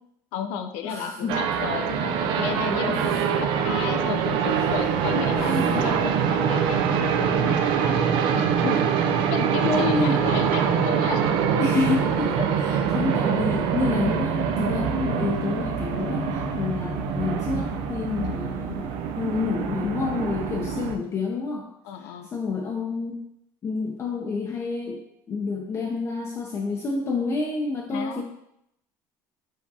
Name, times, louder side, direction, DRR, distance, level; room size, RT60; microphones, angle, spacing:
voice 1, 0.3-5.5 5.8-8.9 9.3-11.5 12.4-12.5 20.7-20.9 21.8-22.3 27.9-28.2, left 7 dB, 85° left, 7 dB, 0.4 m, -33 dB
voice 2, 0.8-1.3 2.9-3.2 4.4-4.7 5.3-5.9 8.1-8.3 9.6-10.2 11.6-21.7 21.9-23.2 23.6-28.2, left 4 dB, 30° left, 0 dB, 0.5 m, -29 dB
sound 1, 1.3-21.0, right 7 dB, 70° right, 0.4 m, -24 dB
sound 2, 14.2-18.8, left 3 dB, 45° left, 0.9 m, -37 dB
4.7 x 3.5 x 2.8 m, 0.80 s
cardioid pair, 125°, 9 cm